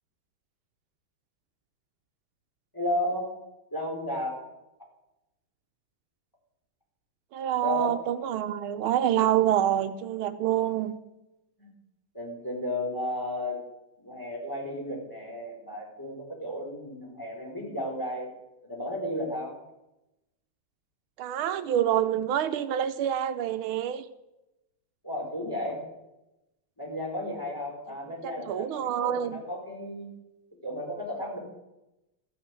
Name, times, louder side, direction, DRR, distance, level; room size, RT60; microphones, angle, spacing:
voice 1, 2.7-3.3 3.7-4.5 7.6-8.0 11.6-11.7 12.1-13.6 14.0-18.3 18.6-19.5 25.0-25.8 26.8-30.1 30.6-31.4, left 1 dB, 10° left, -2 dB, 4.2 m, -33 dB
voice 2, 7.3-11.0 21.2-24.0 28.2-29.4, right 11 dB, 85° right, 11 dB, 1.6 m, -27 dB
14.5 x 8.6 x 8.2 m, 0.94 s
omnidirectional pair, 2.3 m